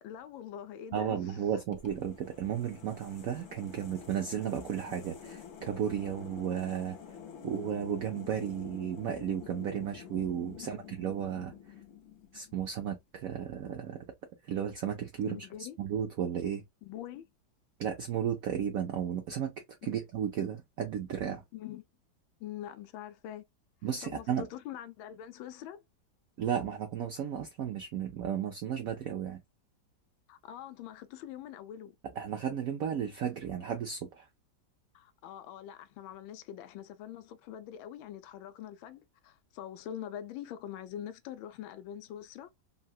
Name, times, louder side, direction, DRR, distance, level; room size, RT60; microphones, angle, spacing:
voice 1, 0.0-1.4 10.5-10.8 15.2-15.8 16.8-17.2 19.9-20.0 21.5-21.8 22.4-23.4 24.0-25.8 30.3-32.0 34.9-42.5, left 10 dB, 90° left, 1.4 m, -44 dB
voice 2, 0.9-7.0 7.4-11.5 12.3-14.1 14.4-15.5 15.8-16.6 17.8-19.5 19.8-21.4 23.8-24.5 26.4-29.4 32.2-34.3, right 9 dB, 80° right, 0.7 m, -34 dB
sound 1, 1.7-12.8, left 7 dB, 65° left, 0.7 m, -48 dB
3.7 x 2.2 x 2.3 m
omnidirectional pair, 2.1 m